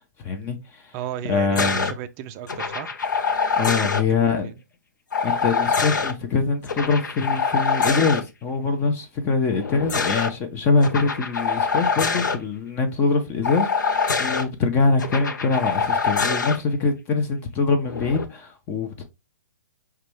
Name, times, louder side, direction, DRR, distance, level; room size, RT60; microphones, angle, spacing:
voice 1, 0.2-0.8 1.2-1.9 3.6-4.5 5.2-19.0, left 4 dB, 20° left, 0.6 m, -23 dB
voice 2, 0.9-3.0 3.8-4.6, right 11 dB, 25° right, 0.4 m, -35 dB
sound 1, 1.6-1.9 2.5-4.0 5.1-6.1 6.7-8.2 9.5-10.3 10.8-12.4 13.4-14.4 15.0-16.6 17.9-18.2, left 5 dB, 80° left, 0.6 m, -24 dB
4.8 x 2.3 x 3.0 m
hypercardioid pair, 135°, 10 cm